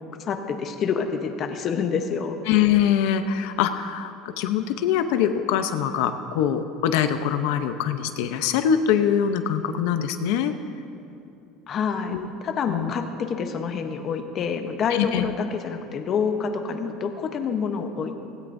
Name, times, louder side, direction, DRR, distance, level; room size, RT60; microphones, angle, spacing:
voice 1, 0.2-2.3 11.7-18.1, left 6 dB, 35° left, 6 dB, 0.9 m, -27 dB
voice 2, 2.5-10.5 12.1-12.3 12.6-12.9 14.9-15.3, left 9 dB, 75° left, 8 dB, 0.8 m, -23 dB
17.5 x 16.5 x 2.7 m, 2.7 s
cardioid pair, 155°, 0 cm